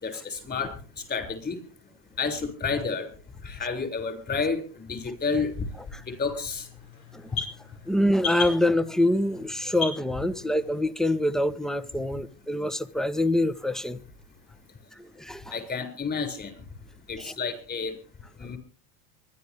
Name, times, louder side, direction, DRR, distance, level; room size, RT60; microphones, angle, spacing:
voice 1, 0.0-0.7 1.1-1.6 2.2-3.1 3.4-4.6 4.9-5.5 6.1-6.6 15.5-16.5 17.1-17.9 18.4-18.6, left 5 dB, 25° left, 6.7 m, -30 dB
sound 1, 5.3-10.8, left 5 dB, 75° left, 7.3 m, -38 dB
voice 2, 7.9-14.0 14.9-15.6 17.2-17.3, left 1 dB, ahead, 1.1 m, -25 dB
24.0 x 11.5 x 3.6 m
supercardioid pair, 100°, 36 cm